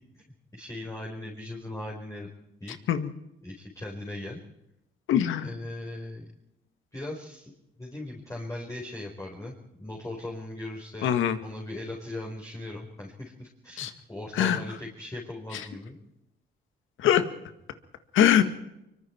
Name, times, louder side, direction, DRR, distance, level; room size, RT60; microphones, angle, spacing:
voice 1, 0.5-2.3 2.6-2.8 3.4-4.4 5.4-6.2 6.9-7.5 7.8-11.1 11.4-16.0, left 1 dB, 15° left, -2 dB, 4.6 m, -39 dB
voice 2, 5.1-5.5 11.0-11.4 13.8-13.9 14.4-14.6 17.0-17.2 18.1-18.4, left 10 dB, 80° left, 9 dB, 1.9 m, -22 dB
24.0 x 23.5 x 4.6 m, 0.86 s
cardioid pair, 90°, 20 cm